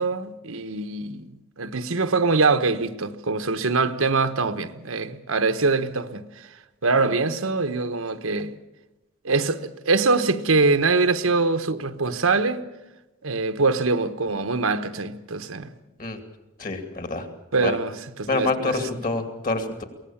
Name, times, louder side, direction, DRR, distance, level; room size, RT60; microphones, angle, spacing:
voice 1, 0.0-6.5 6.8-8.5 9.2-12.6 13.2-15.7 17.5-17.9 18.2-18.9, right 3 dB, 80° right, 1.1 m, -23 dB
voice 2, 16.6-17.3 17.6-17.8 18.3-19.8, left 3 dB, 40° left, 2.4 m, -26 dB
23.5 x 18.0 x 7.2 m
head